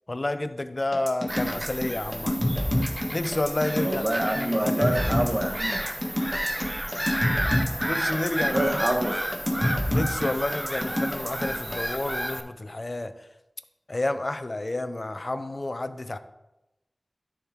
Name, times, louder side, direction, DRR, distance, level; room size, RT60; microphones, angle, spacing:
voice 1, 0.1-2.4 3.1-5.4 7.8-8.8 9.9-13.1 13.9-16.2, left 2 dB, 50° left, 11 dB, 0.5 m, -30 dB
sound 1, 0.9-11.8, left 1 dB, 10° left, 1.5 m, -27 dB
Bird vocalization bird call bird song / Gull seagull, 1.3-12.4, equal, 15° right, 0.7 m, -32 dB
voice 2, 3.8-5.8 6.6-6.7 8.5-9.2, right 1 dB, 45° right, 3 dB, 1.1 m, -27 dB
10.0 x 3.6 x 4.4 m, 0.96 s
wide cardioid pair, 50°, 0 cm